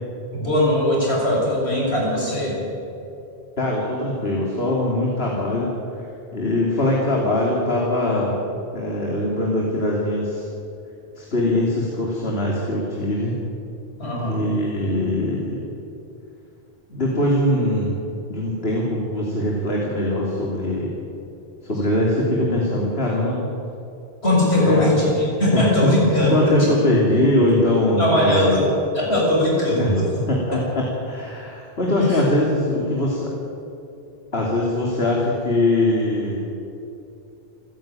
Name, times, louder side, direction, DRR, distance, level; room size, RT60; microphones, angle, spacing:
voice 1, 0.3-2.6 14.0-14.5 24.2-26.5 28.0-28.7 28.9-30.1 32.1-32.2, left 1 dB, 90° left, -4 dB, 7.4 m, -20 dB
voice 2, 3.6-5.7 6.0-6.1 6.3-8.4 8.7-10.5 11.1-13.4 14.2-15.6 16.9-18.0 18.3-20.9 21.6-23.5 24.6-24.9 25.5-25.9 26.3-28.7 29.8-30.0 30.3-33.3 34.3-36.4, left 1 dB, 70° left, -3 dB, 3.2 m, -22 dB
28.0 x 10.5 x 9.0 m, 2.7 s
omnidirectional pair, 1.1 m